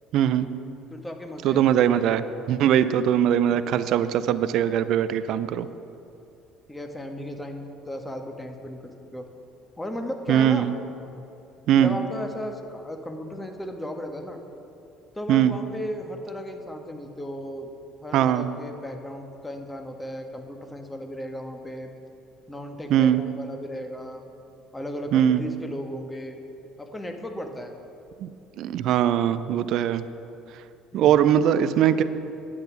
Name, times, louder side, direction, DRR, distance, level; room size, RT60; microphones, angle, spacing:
voice 1, 0.1-0.5 1.4-5.7 10.3-10.7 11.7-11.9 15.3-15.5 18.1-18.5 22.9-23.2 25.1-25.5 28.2-28.3 28.6-30.0 30.9-32.0, right 10 dB, 55° right, 14 dB, 0.4 m, -21 dB
voice 2, 0.9-1.6 6.7-8.8 9.1-9.2 9.8-10.7 11.6-14.4 15.1-17.7 18.0-21.9 22.5-24.2 24.7-26.4 26.8-27.7 30.9-31.2, equal, 10° left, 4 dB, 1.5 m, -35 dB
10.5 x 8.9 x 5.9 m, 2.7 s
figure-of-eight pair, 55°, 0 cm